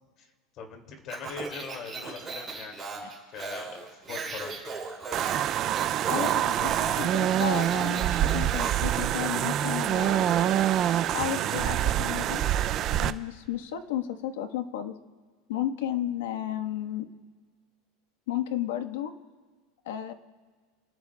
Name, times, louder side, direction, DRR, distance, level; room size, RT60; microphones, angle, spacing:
voice 1, 0.5-3.1 3.3-4.7, left 5 dB, 35° left, 3 dB, 2.6 m, -41 dB
Speech, 1.1-8.9, right 4 dB, 15° right, 4.2 m, -37 dB
sound 1, 5.1-13.1, right 11 dB, 30° right, 0.5 m, -26 dB
voice 2, 6.1-10.7 11.1-12.4 13.0-15.0 15.5-17.1 18.3-19.1 19.8-20.1, left 11 dB, 85° left, 7 dB, 1.4 m, -33 dB
29.0 x 18.5 x 2.4 m, 1.5 s
supercardioid pair, 170°, 0 cm